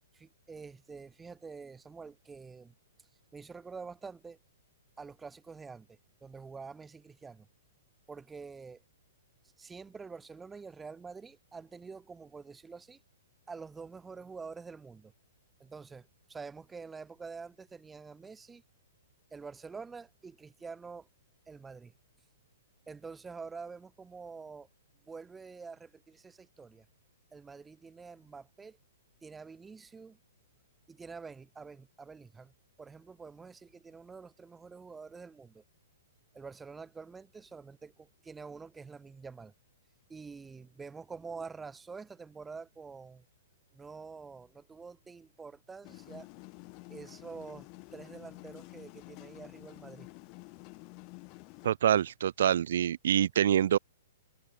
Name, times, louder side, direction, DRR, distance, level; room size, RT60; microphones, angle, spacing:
voice 1, 0.1-2.7 3.3-4.4 5.0-7.5 8.1-8.8 9.6-13.0 13.5-15.1 15.6-18.6 19.3-21.1 21.5-21.9 22.9-24.7 25.0-26.8 27.3-28.8 29.2-30.2 30.9-32.5 32.8-35.6 36.3-39.5 40.1-43.2 43.7-46.3 46.9-50.1, right 5 dB, 10° right, 5.0 m, -47 dB
sound 1, 45.8-51.7, left 33 dB, 35° left, 3.0 m, -50 dB
voice 2, 51.6-53.8, right 10 dB, 65° right, 0.4 m, -26 dB
hypercardioid pair, 150°, 0 cm